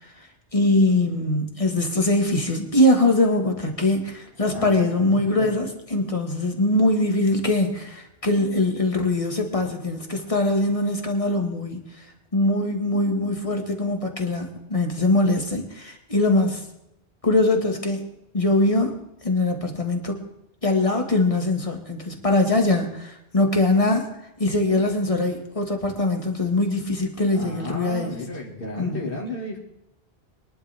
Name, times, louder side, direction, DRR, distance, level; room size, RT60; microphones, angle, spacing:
voice 1, 0.0-12.0 12.3-16.7 17.2-18.0 18.3-20.2 20.6-24.1 24.4-28.2 28.8-29.1, left 2 dB, 30° left, 2 dB, 2.0 m, -22 dB
voice 2, 4.5-5.5 27.3-29.6, left 1 dB, 55° left, -2 dB, 2.4 m, -33 dB
23.0 x 11.0 x 3.5 m, 0.84 s
omnidirectional pair, 1.1 m